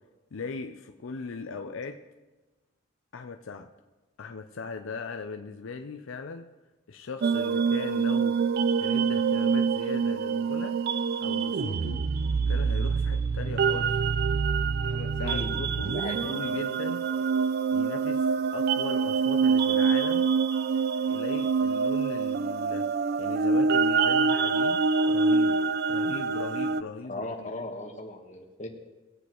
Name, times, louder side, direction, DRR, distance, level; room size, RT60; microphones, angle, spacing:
voice 1, 0.3-2.0 3.1-3.7 4.2-6.5 6.9-8.4 8.8-10.8 11.2-12.0 12.5-14.0 14.8-17.1 17.7-18.3 18.5-20.3 21.1-22.9 23.2-25.6 25.9-27.5, left 4 dB, 80° left, 6 dB, 0.5 m, -38 dB
sound 1, 7.2-26.8, right 5 dB, 50° right, 0.3 m, -26 dB
voice 2, 15.2-16.1 27.1-28.7, left 2 dB, 35° left, 1 dB, 1.3 m, -37 dB
19.5 x 8.1 x 3.0 m, 1.2 s
head